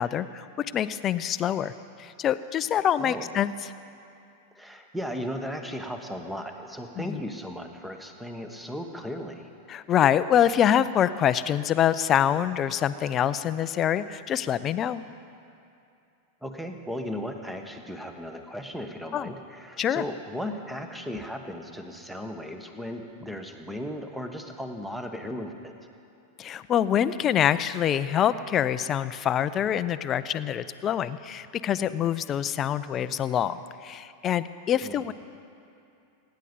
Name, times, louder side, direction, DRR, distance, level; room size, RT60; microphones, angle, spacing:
voice 1, 0.0-1.7 2.0-3.7 7.0-7.2 9.7-15.0 19.1-19.3 19.8-20.0 26.4-33.6 33.8-35.1, left 10 dB, 30° left, 14 dB, 0.5 m, -25 dB
voice 2, 4.5-9.5 16.4-25.7 34.8-35.0, equal, 5° right, 5 dB, 1.4 m, -36 dB
25.0 x 10.5 x 5.4 m, 2.6 s
figure-of-eight pair, 90°, 0 cm